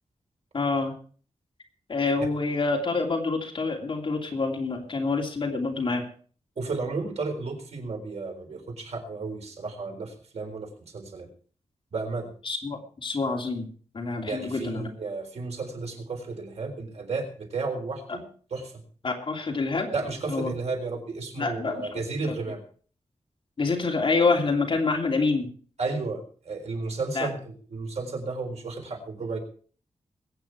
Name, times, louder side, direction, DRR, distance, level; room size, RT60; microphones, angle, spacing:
voice 1, 0.5-0.9 1.9-6.1 12.4-13.7 13.9-14.9 18.1-18.2 19.0-19.9 20.3-20.5 21.4-22.3 23.6-25.5 27.1-27.3, left 3 dB, 50° left, 1 dB, 3.0 m, -27 dB
voice 2, 6.6-11.3 11.9-12.3 14.3-18.2 18.5-18.7 19.9-22.6 25.8-29.4, right 3 dB, 75° right, 3 dB, 3.9 m, -33 dB
21.5 x 8.9 x 4.7 m, 0.43 s
wide cardioid pair, 150°, 11 cm